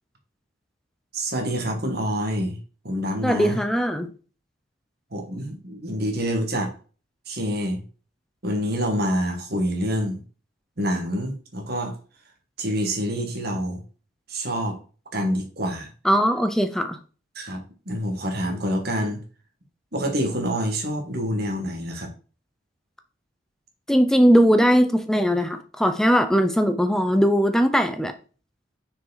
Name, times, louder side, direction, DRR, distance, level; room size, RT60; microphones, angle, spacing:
voice 1, 1.1-2.6 2.8-3.6 5.1-6.7 7.3-7.8 8.4-10.2 10.8-11.9 12.6-13.8 14.3-14.7 15.1-15.9 17.3-19.2 19.9-22.1, equal, 50° right, 1.6 m, -27 dB
voice 2, 3.2-4.1 16.0-17.0 23.9-28.1, equal, 5° left, 0.5 m, -19 dB
6.1 x 4.8 x 4.1 m
head